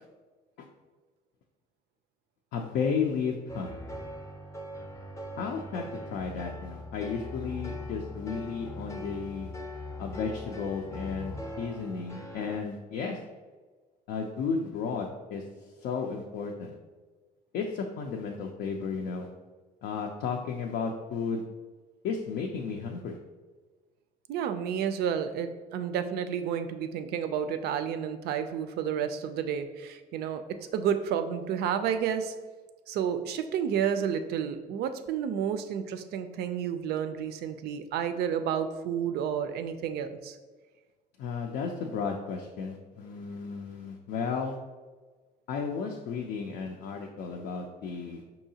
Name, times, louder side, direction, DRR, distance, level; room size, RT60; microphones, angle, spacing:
voice 1, 2.5-3.7 5.4-9.5 10.0-13.2 14.1-15.4 15.8-16.7 17.5-19.3 19.8-21.4 22.0-23.2 41.2-44.6 45.5-48.2, left 5 dB, 75° left, 1 dB, 0.4 m, -33 dB
sound 1, 3.5-12.6, left 1 dB, 15° left, 0.5 m, -41 dB
voice 2, 24.3-30.4 30.7-32.3 32.9-40.4, right 8 dB, 70° right, 9 dB, 0.4 m, -31 dB
4.7 x 2.7 x 2.7 m, 1.4 s
cardioid pair, 110°, 17 cm